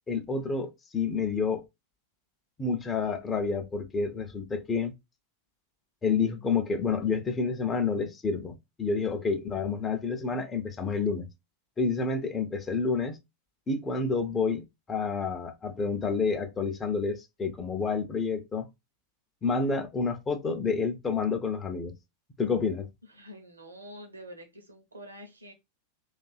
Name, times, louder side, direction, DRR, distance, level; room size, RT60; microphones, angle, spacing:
voice 1, 0.1-1.6 2.6-4.9 6.0-11.3 11.8-13.2 13.7-18.7 19.4-21.9 22.4-22.9, left 4 dB, 20° left, 0.5 m, -29 dB
voice 2, 23.0-25.5, equal, 80° right, 0.7 m, -47 dB
2.6 x 2.3 x 2.2 m
figure-of-eight pair, 90°, 0 cm